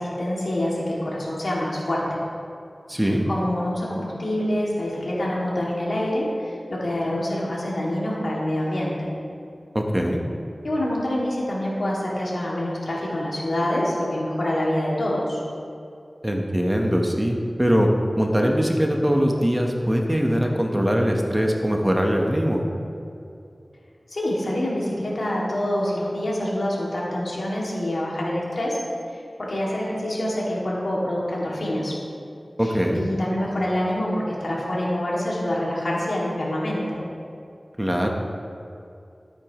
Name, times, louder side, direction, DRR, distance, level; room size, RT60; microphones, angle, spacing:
voice 1, 0.0-2.2 3.0-9.1 10.6-15.4 24.1-28.8 29.1-31.9 32.6-37.0, left 1 dB, 80° left, -5 dB, 2.3 m, -26 dB
voice 2, 2.9-3.2 9.7-10.2 16.2-17.9 18.2-22.6 32.6-33.0 37.8-38.1, equal, 15° right, 1 dB, 1.1 m, -22 dB
13.0 x 8.7 x 3.1 m, 2.6 s
wide cardioid pair, 55°, 0 cm